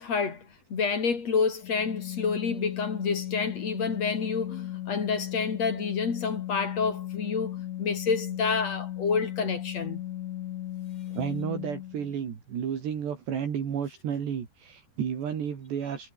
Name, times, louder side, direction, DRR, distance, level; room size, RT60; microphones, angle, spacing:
voice 1, 0.0-10.0, left 5 dB, 40° left, 4.1 m, -29 dB
Organ, 1.6-12.2, left 13 dB, 80° left, 4.0 m, -36 dB
voice 2, 11.1-16.1, right 8 dB, 65° right, 5.6 m, -32 dB
omnidirectional pair, 5.2 m